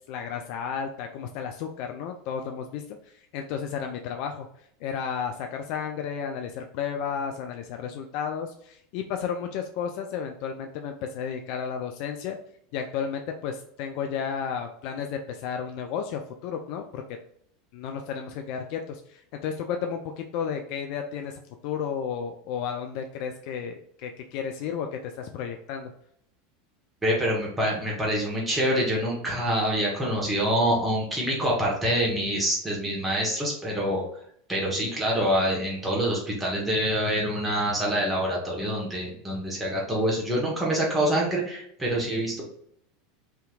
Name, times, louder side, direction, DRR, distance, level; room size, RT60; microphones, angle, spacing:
voice 1, 0.1-4.5 4.8-12.4 12.7-17.2 17.7-25.9, left 7 dB, 60° left, 4 dB, 0.3 m, -33 dB
voice 2, 27.0-34.0 34.5-42.5, equal, 15° right, -4 dB, 1.2 m, -26 dB
3.4 x 2.8 x 2.3 m, 0.68 s
hypercardioid pair, 85°, 0 cm